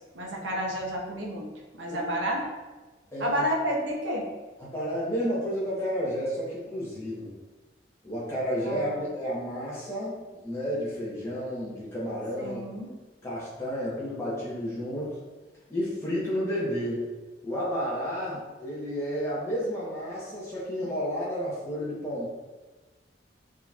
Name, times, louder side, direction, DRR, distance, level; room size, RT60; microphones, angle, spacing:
voice 1, 0.1-1.5 1.7-2.5 3.2-4.2 8.7-8.8 12.4-12.9, equal, 85° right, 0 dB, 0.7 m, -30 dB
voice 2, 3.1-3.4 4.6-7.3 8.0-12.6 13.2-15.2 15.7-17.0 17.4-22.3, equal, 15° left, -8 dB, 1.0 m, -31 dB
3.7 x 2.9 x 2.4 m, 1.2 s
head